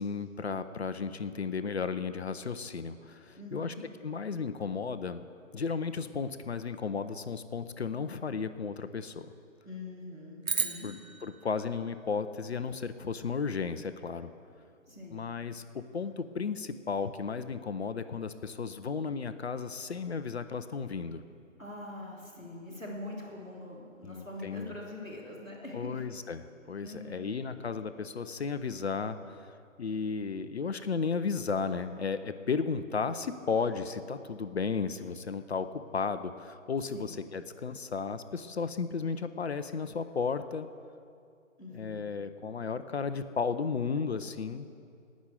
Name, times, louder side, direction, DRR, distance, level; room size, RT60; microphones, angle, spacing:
voice 1, 0.0-3.7 4.0-5.3 5.5-9.3 10.8-14.3 15.1-21.2 24.0-24.7 25.7-40.7 41.7-44.7, left 5 dB, 55° left, 11 dB, 0.6 m, -34 dB
voice 2, 3.4-3.8 9.6-10.9 14.9-15.2 21.6-26.0 26.8-27.3 36.9-37.1 41.6-42.0, left 2 dB, ahead, -18 dB, 0.6 m, -43 dB
sound 1, 10.4-12.9, right 5 dB, 85° right, 1.1 m, -36 dB
17.5 x 6.3 x 7.8 m, 2.5 s
figure-of-eight pair, 145°, 40 cm